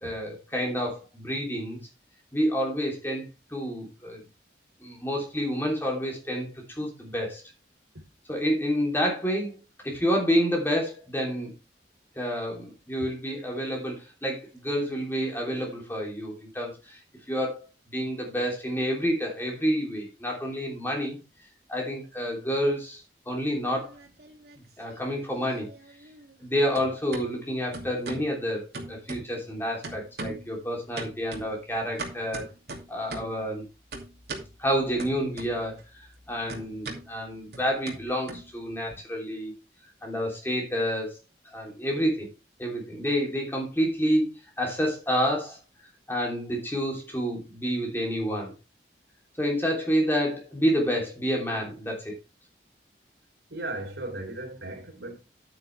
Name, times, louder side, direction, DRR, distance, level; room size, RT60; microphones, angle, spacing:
voice 1, 0.0-1.9 2.3-3.2 3.5-4.2 4.8-6.5 6.8-7.4 8.3-11.5 12.1-17.0 17.3-17.6 17.9-21.2 21.7-24.0 24.8-25.7 26.4-32.5 32.9-33.6 34.6-39.5 40.0-41.2 41.4-42.3 42.6-44.3 44.6-45.6 46.1-48.5 49.4-52.1, equal, 10° left, 3.2 m, -29 dB
sound 1, 23.6-24.6 24.9-26.5 26.7-27.3 27.7-28.3 28.7-29.5 29.8-30.5 31.0-33.4 33.9-34.5 35.0-35.8 36.1-38.9, right 2 dB, 65° right, 2.6 m, -40 dB
voice 2, 53.5-55.1, right 2 dB, 85° right, 3.6 m, -36 dB
9.7 x 9.2 x 3.3 m
head